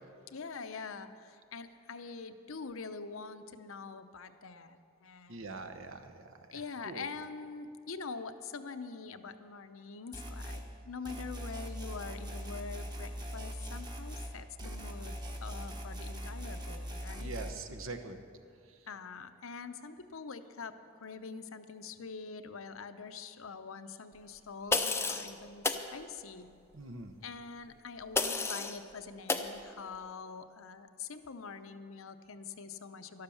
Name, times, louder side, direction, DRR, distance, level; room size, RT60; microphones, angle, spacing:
voice 1, 0.3-5.5 6.5-15.2 15.4-17.3 18.9-26.5 27.2-33.2, left 5 dB, 70° left, 10 dB, 0.7 m, -45 dB
voice 2, 5.3-7.1 17.2-18.2 18.7-18.8 26.7-27.1, right 3 dB, 65° right, 7 dB, 1.0 m, -44 dB
sound 1, 10.1-10.6 11.0-14.3 14.6-17.5, equal, 20° right, 1.2 m, -41 dB
sound 2, 24.7-25.3 25.6-25.9 28.2-28.8 29.3-29.5, left 3 dB, 10° left, 0.5 m, -31 dB
12.5 x 12.0 x 7.1 m, 2.4 s
head